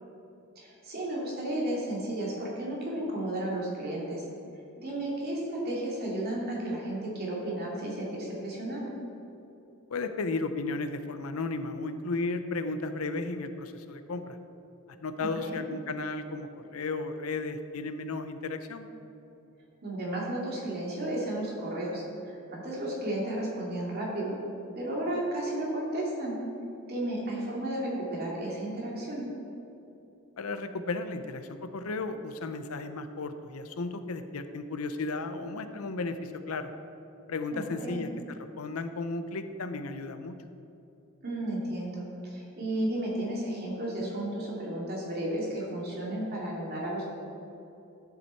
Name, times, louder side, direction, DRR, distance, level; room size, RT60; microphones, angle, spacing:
voice 1, 0.6-4.3 4.8-8.9 15.2-15.6 19.8-24.4 24.7-26.4 26.9-29.3 37.5-38.0 41.2-47.0, right 1 dB, 50° right, -4 dB, 2.6 m, -33 dB
voice 2, 9.9-14.4 15.0-18.9 30.4-36.7 37.3-40.4, left 3 dB, 80° left, 9 dB, 0.6 m, -34 dB
12.0 x 7.3 x 4.5 m, 2.9 s
head